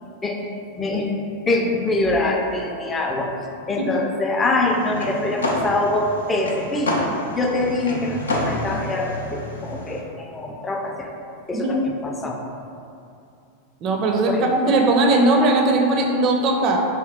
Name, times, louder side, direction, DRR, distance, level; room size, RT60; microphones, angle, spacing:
voice 1, 0.2-1.1 1.5-3.3 3.7-7.1 7.3-11.1 11.5-12.4 14.3-14.4, left 2 dB, 20° left, 1 dB, 0.4 m, -24 dB
sound 1, 4.5-10.0, left 1 dB, 85° left, 0.4 m, -28 dB
voice 2, 13.8-16.8, right 2 dB, 45° right, 2 dB, 0.4 m, -19 dB
3.0 x 2.2 x 3.3 m, 2.6 s
hypercardioid pair, 95°, 0 cm